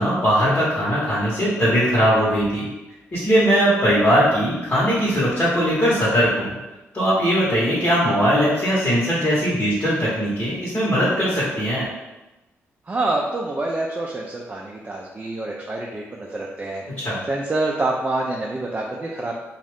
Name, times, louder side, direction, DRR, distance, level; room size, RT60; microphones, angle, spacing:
voice 1, 0.0-2.7 3.1-6.6 6.9-11.8 17.0-17.2, equal, 35° left, -9 dB, 1.1 m, -20 dB
voice 2, 12.9-16.8 17.3-19.3, right 2 dB, 30° right, -2 dB, 0.4 m, -26 dB
2.5 x 2.4 x 3.4 m, 1.0 s
supercardioid pair, 55°, 6 cm